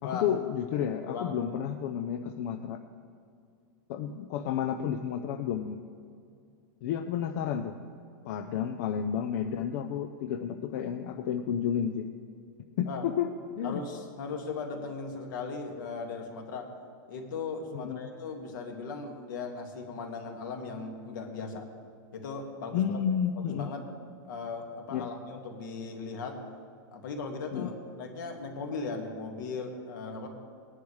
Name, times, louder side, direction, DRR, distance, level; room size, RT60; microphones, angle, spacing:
voice 1, 0.0-2.8 3.9-5.8 6.8-7.8 8.2-12.1 12.8-13.3 13.6-13.8 17.7-18.1 22.7-23.7 24.9-25.1 27.5-27.7, left 8 dB, 40° left, 6 dB, 0.5 m, -31 dB
voice 2, 1.1-1.4 12.9-13.1 13.6-16.7 17.1-21.7 22.1-23.0 23.4-23.8 24.2-26.4 26.9-30.3, left 4 dB, 60° left, 2 dB, 2.0 m, -38 dB
19.5 x 10.5 x 3.2 m, 2.4 s
supercardioid pair, 175°, 12 cm